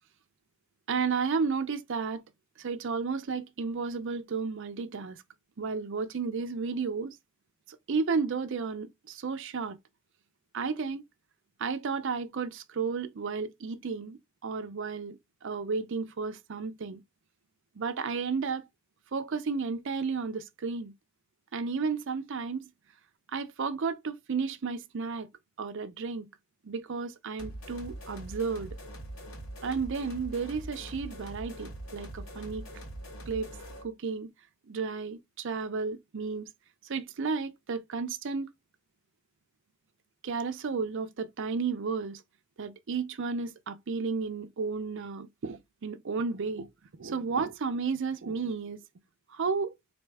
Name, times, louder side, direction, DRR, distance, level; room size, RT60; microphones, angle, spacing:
voice 1, 0.9-2.2 2.6-5.2 5.6-7.2 7.7-9.8 10.5-11.0 11.6-17.0 17.8-18.7 19.1-20.9 21.5-22.7 23.3-25.3 25.6-26.3 26.6-28.8 29.6-32.7 33.3-33.5 33.8-34.3 34.7-36.5 36.8-38.5 40.2-42.2 42.6-46.7 47.0-48.8 49.3-49.7, right 5 dB, 60° right, 0.5 m, -33 dB
sound 1, 27.4-33.9, right 1 dB, 90° left, 1.5 m, -43 dB
4.2 x 2.7 x 3.4 m
head